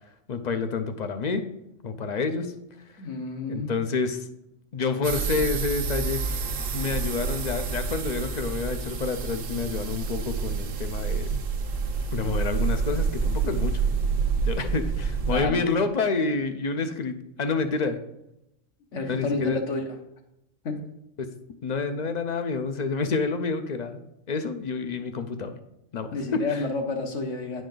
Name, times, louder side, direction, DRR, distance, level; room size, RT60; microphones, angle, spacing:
voice 1, 0.3-1.5 1.8-2.5 3.5-4.3 4.7-6.2 6.7-11.4 12.1-13.8 14.4-18.0 19.1-19.6 21.2-21.3 21.6-24.0 24.3-25.6 25.9-26.7, left 4 dB, 50° left, 9 dB, 0.5 m, -28 dB
voice 2, 3.0-3.7 15.3-15.8 18.9-19.8 20.6-20.8 26.1-27.6, left 3 dB, 70° left, 3 dB, 1.4 m, -30 dB
sound 1, 5.0-15.5, right 5 dB, 75° right, 1.2 m, -28 dB
9.7 x 5.1 x 3.9 m, 0.85 s
omnidirectional pair, 1.4 m